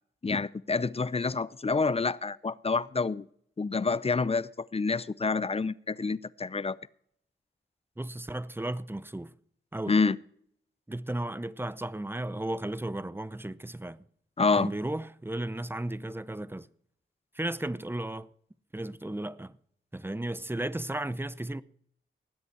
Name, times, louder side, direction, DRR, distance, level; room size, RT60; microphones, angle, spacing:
voice 1, 0.2-3.2 3.6-6.8 9.9-10.2 14.4-14.7, left 4 dB, 30° left, 0.6 m, -28 dB
voice 2, 8.0-9.3 9.7-10.0 10.9-14.0 14.6-16.7 17.3-18.3 18.7-19.5 19.9-21.6, right 1 dB, 10° right, 0.6 m, -34 dB
19.5 x 8.2 x 4.6 m
cardioid pair, 55°, 20 cm